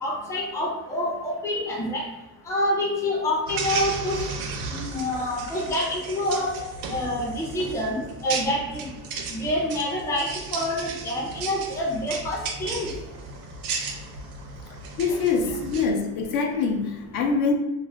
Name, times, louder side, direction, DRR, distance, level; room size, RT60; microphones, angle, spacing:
voice 1, 0.0-2.0 2.5-4.2 4.7-6.5 6.9-9.0 9.3-12.9, left 1 dB, 10° left, -3 dB, 0.4 m, -27 dB
sound 1, 3.5-15.9, right 4 dB, 70° right, 0.5 m, -34 dB
voice 2, 15.0-17.5, left 5 dB, 75° left, 3 dB, 0.5 m, -24 dB
2.4 x 2.1 x 3.2 m, 1.0 s
cardioid pair, 145°, 35 cm